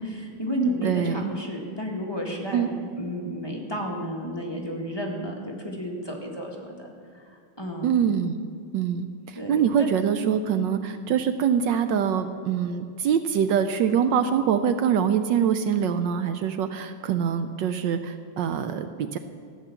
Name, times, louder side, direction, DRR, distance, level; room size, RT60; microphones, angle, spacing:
voice 1, 0.2-2.7 3.0-7.9 9.3-9.9 10.2-10.4, equal, 15° left, -1 dB, 1.4 m, -32 dB
voice 2, 0.8-1.3 2.5-2.7 7.8-8.4 8.7-19.2, right 8 dB, 70° right, 9 dB, 1.1 m, -24 dB
14.5 x 8.4 x 7.0 m, 2.3 s
omnidirectional pair, 2.3 m